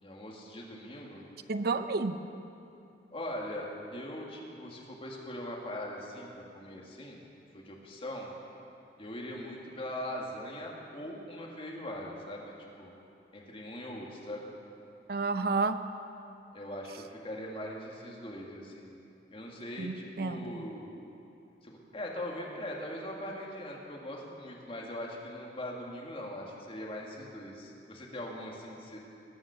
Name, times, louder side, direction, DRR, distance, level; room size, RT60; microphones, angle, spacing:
voice 1, 0.0-1.2 3.1-7.2 7.5-8.3 9.0-12.5 12.8-12.9 13.3-14.5 16.5-18.9 19.3-20.9 21.6-29.0, left 1 dB, 30° left, -2 dB, 2.0 m, -41 dB
voice 2, 1.5-2.2 15.1-15.8 19.8-20.6, right 3 dB, 60° right, 10 dB, 0.6 m, -31 dB
20.0 x 7.4 x 7.0 m, 2.7 s
head